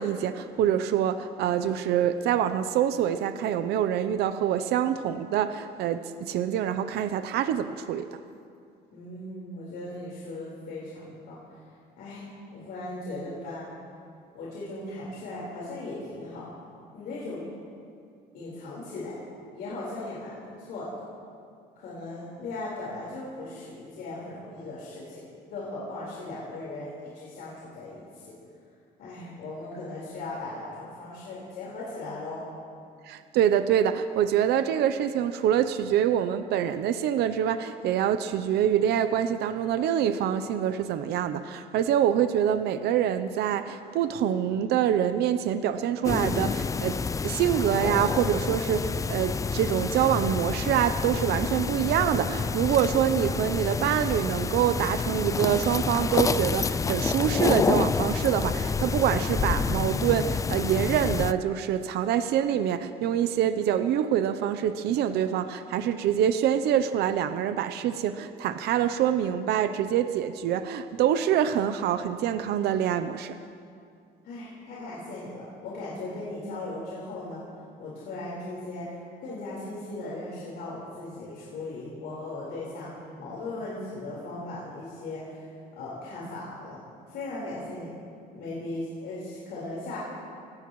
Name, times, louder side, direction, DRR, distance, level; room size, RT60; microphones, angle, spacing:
voice 1, 0.0-8.1 33.1-47.0 47.2-73.4, right 10 dB, 75° right, 10 dB, 0.7 m, -25 dB
voice 2, 8.9-11.4 12.0-12.2 12.5-13.7 14.3-16.5 16.9-17.5 18.3-19.2 19.5-21.1 21.8-25.2 25.5-28.4 29.0-32.4 74.2-77.4 77.8-79.0 79.2-82.9 83.2-85.5 85.8-86.8 87.1-87.9 88.3-90.0, left 2 dB, 75° left, -7 dB, 4.6 m, -38 dB
sound 1, 46.0-61.3, left 5 dB, 20° left, 0.3 m, -28 dB
24.5 x 17.5 x 3.2 m, 2.4 s
cardioid pair, 110°, 17 cm